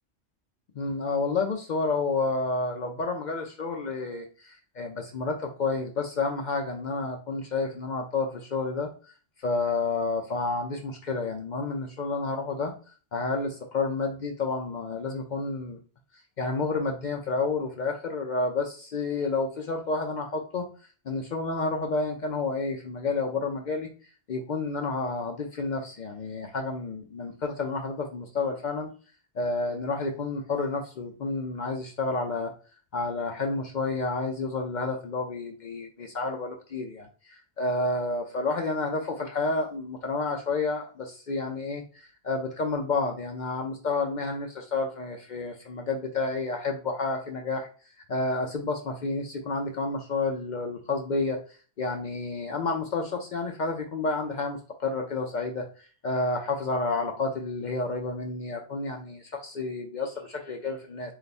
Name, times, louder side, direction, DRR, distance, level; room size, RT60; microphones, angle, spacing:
voice 1, 0.8-8.9 9.4-12.7 13.1-15.8 16.4-20.7 21.1-23.9 24.3-28.9 29.4-32.5 32.9-47.7 48.1-51.4 51.8-55.7 56.0-61.1, left 3 dB, 55° left, 3 dB, 0.5 m, -30 dB
3.3 x 2.4 x 4.0 m, 0.38 s
omnidirectional pair, 1.2 m